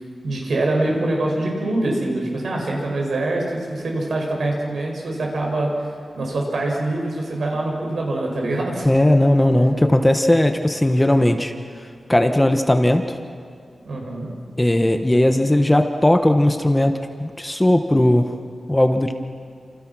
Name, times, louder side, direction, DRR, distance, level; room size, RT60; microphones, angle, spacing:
voice 1, 0.2-5.9 6.2-8.9 13.8-14.3, right 2 dB, 70° right, -1 dB, 7.1 m, -24 dB
voice 2, 8.8-11.5 12.1-13.2 14.6-18.2 18.7-19.1, left 1 dB, 10° left, 6 dB, 1.1 m, -17 dB
29.5 x 28.0 x 6.3 m, 2.2 s
wide cardioid pair, 180°, 0 cm